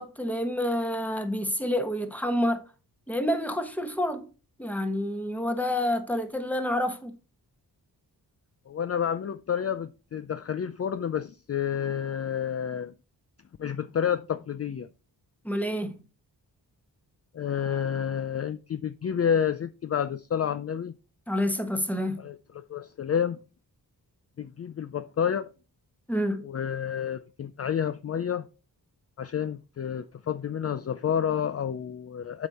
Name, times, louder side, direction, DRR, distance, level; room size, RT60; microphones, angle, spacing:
voice 1, 0.0-2.6 3.1-4.3 4.6-7.1 15.4-16.0 21.3-22.2 26.1-26.5, left 1 dB, 5° left, 1.3 m, -28 dB
voice 2, 8.7-12.9 13.6-14.9 17.3-20.9 22.2-23.4 24.4-25.5 26.4-28.5 29.2-32.5, left 8 dB, 40° left, 0.5 m, -29 dB
7.8 x 5.3 x 4.2 m
cardioid pair, 80°, 38 cm